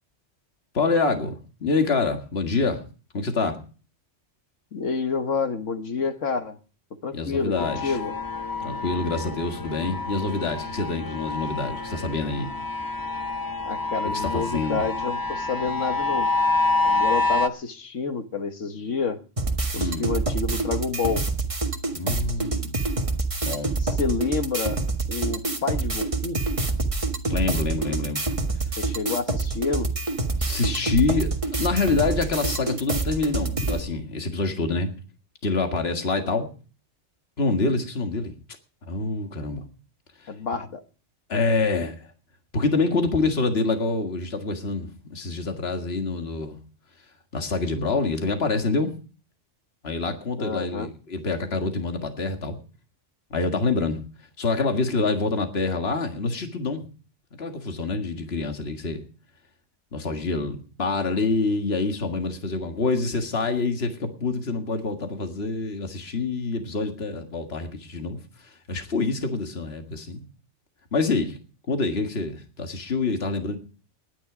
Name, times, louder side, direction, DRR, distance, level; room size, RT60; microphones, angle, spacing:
voice 1, 0.7-2.8 3.1-3.6 7.1-8.0 8.6-12.5 14.0-14.8 19.8-20.1 21.9-22.8 23.4-23.7 27.3-28.3 30.4-34.9 35.4-36.5 37.4-38.3 38.9-39.6 40.2-40.3 41.3-42.1 42.5-46.6 47.3-48.9 49.8-52.6 53.3-54.0 54.4-56.8 57.4-59.0 59.9-70.2 70.9-71.4 71.7-73.6, left 3 dB, 55° left, 2.1 m, -26 dB
voice 2, 4.7-6.6 7.0-8.1 13.6-16.3 16.8-19.2 19.7-21.2 23.8-24.8 25.1-26.4 28.8-29.9 40.3-40.8 50.4-50.9, left 4 dB, 90° left, 1.7 m, -28 dB
sound 1, 7.6-17.5, left 3 dB, 20° left, 0.9 m, -27 dB
sound 2, 19.4-33.8, right 3 dB, 25° right, 1.7 m, -27 dB
19.5 x 10.5 x 5.0 m
omnidirectional pair, 1.2 m